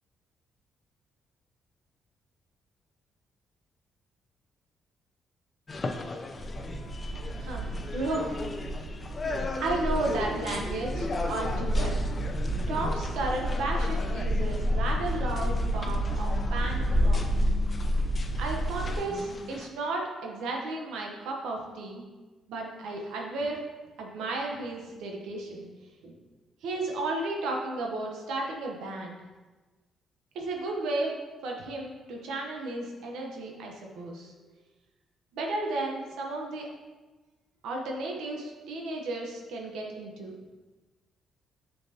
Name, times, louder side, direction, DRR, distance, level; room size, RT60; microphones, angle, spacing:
sound 1, 5.7-19.7, left 3 dB, 35° left, 0.6 m, -38 dB
sound 2, 6.4-19.0, equal, 45° right, 1.2 m, -29 dB
voice 1, 7.4-8.3 9.6-12.1 12.7-17.2 18.4-22.0 22.5-23.6 24.0-25.7 26.0-26.1 26.6-29.2 30.3-31.2 31.4-34.3 35.3-36.7 37.6-40.3, right 2 dB, 85° right, 0 dB, 0.9 m, -33 dB
6.5 x 5.7 x 2.8 m, 1.2 s
cardioid pair, 90°, 0 cm